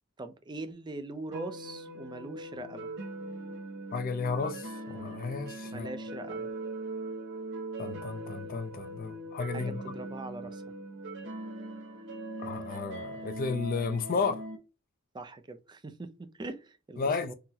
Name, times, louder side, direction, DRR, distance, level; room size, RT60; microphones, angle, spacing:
voice 1, 0.2-2.9 5.7-6.5 9.5-10.6 15.1-16.1 16.4-17.3, right 2 dB, 20° right, 0.4 m, -41 dB
sound 1, 1.3-14.6, right 2 dB, 60° right, 0.7 m, -40 dB
voice 2, 3.9-5.9 7.8-9.8 12.4-14.4 17.0-17.3, left 4 dB, 45° left, 0.4 m, -33 dB
3.8 x 2.0 x 2.7 m
head